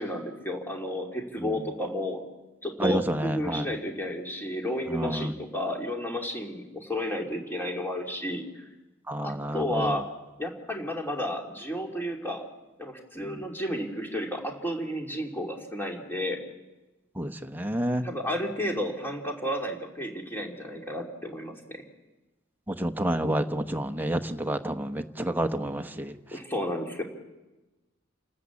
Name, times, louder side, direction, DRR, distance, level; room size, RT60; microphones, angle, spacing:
voice 1, 0.0-2.2 2.6-8.6 9.2-10.1 10.4-12.5 12.8-16.4 18.0-21.8 26.3-27.0, left 1 dB, 10° left, 1 dB, 2.9 m, -32 dB
voice 2, 2.8-3.6 4.9-5.3 9.1-10.0 17.2-18.1 22.7-26.1, right 1 dB, 10° right, 7 dB, 1.0 m, -29 dB
28.5 x 13.5 x 8.5 m, 1.1 s
head